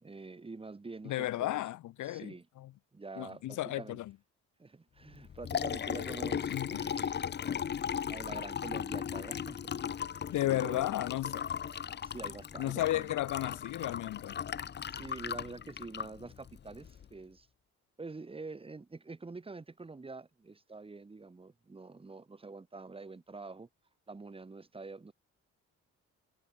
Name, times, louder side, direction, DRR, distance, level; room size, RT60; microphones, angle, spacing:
voice 1, 0.0-1.6 2.0-2.5 2.9-4.0 4.6-7.1 8.1-10.9 12.0-13.1 14.8-17.5 18.0-23.7 24.1-25.1, right 3 dB, 20° right, 1.4 m, -46 dB
voice 2, 1.0-2.3 3.2-4.1 6.5-6.8 10.3-11.4 12.6-14.4, left 15 dB, 80° left, 1.2 m, -33 dB
Liquid, 5.1-17.1, left 8 dB, 35° left, 0.7 m, -37 dB
cardioid pair, 90°, 30 cm